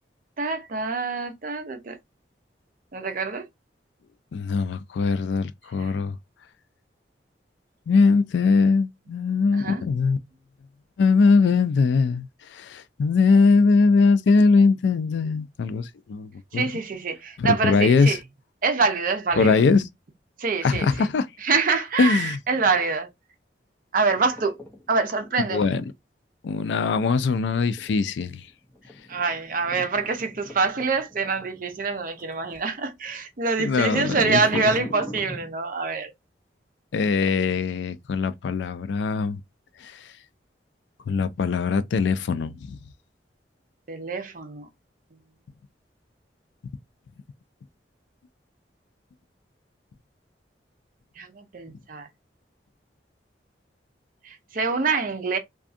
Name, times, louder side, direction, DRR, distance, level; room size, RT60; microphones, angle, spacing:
voice 1, 0.4-2.0 2.9-3.5 5.8-5.9 9.5-9.8 16.5-18.2 18.6-19.6 20.4-20.9 21.4-23.1 23.9-24.6 24.9-25.7 29.1-36.1 43.9-44.7 51.2-52.1 54.2-55.4, right 4 dB, 50° right, 0.6 m, -25 dB
voice 2, 4.3-6.2 7.9-10.2 11.0-16.7 17.4-18.2 19.4-19.9 20.6-21.3 22.0-22.4 25.5-25.8 26.4-28.5 33.6-34.7 36.9-39.4 39.8-40.1 41.1-42.8, left 4 dB, 85° left, 0.3 m, -21 dB
sound 1, 24.1-25.5 27.5-32.7 33.1-33.3 34.0-35.5, equal, 15° left, 0.6 m, -41 dB
2.6 x 2.3 x 2.4 m
head